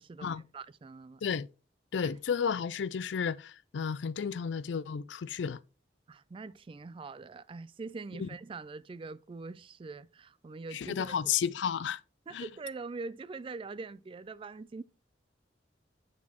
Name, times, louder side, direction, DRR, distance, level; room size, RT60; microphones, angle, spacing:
voice 1, 0.0-1.2 2.0-2.1 6.1-11.3 12.3-14.8, right 4 dB, 30° right, 0.3 m, -43 dB
voice 2, 1.9-5.6 8.2-8.3 10.7-12.0 12.3-12.5, left 7 dB, 85° left, 0.4 m, -32 dB
9.4 x 6.0 x 3.0 m
head